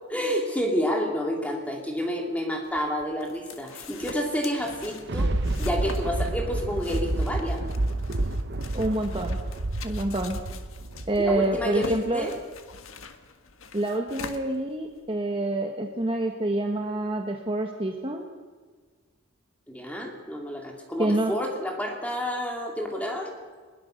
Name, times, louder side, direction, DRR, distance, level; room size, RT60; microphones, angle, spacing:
voice 1, 0.1-5.3 5.6-7.6 11.2-12.3 19.7-23.3, equal, 5° left, 1 dB, 2.8 m, -29 dB
sound 1, 2.6-15.1, left 4 dB, 85° left, 1.5 m, -44 dB
Thunder, 4.7-12.2 12.7-12.8, right 2 dB, 55° right, 0.9 m, -29 dB
voice 2, 8.7-9.4 9.8-10.4 11.1-12.3 13.7-18.2 21.0-21.3, right 2 dB, 25° right, 3 dB, 1.4 m, -27 dB
21.5 x 21.0 x 6.6 m, 1.5 s
head